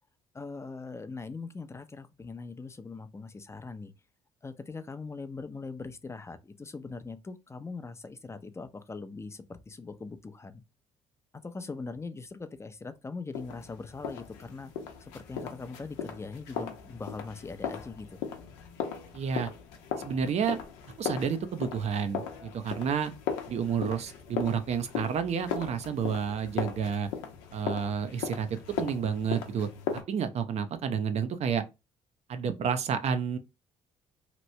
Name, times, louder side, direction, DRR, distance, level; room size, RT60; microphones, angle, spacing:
voice 1, 0.3-3.9 4.4-10.6 11.4-14.7 15.0-18.2, left 4 dB, 20° left, 0.6 m, -41 dB
sound 1, 13.3-30.0, left 7 dB, 85° left, 0.7 m, -38 dB
voice 2, 19.1-19.5 20.0-20.6 21.0-23.1 23.5-27.1 27.5-31.6 32.3-33.4, right 7 dB, 55° right, 0.6 m, -30 dB
3.0 x 2.5 x 3.1 m
supercardioid pair, 60°, 13 cm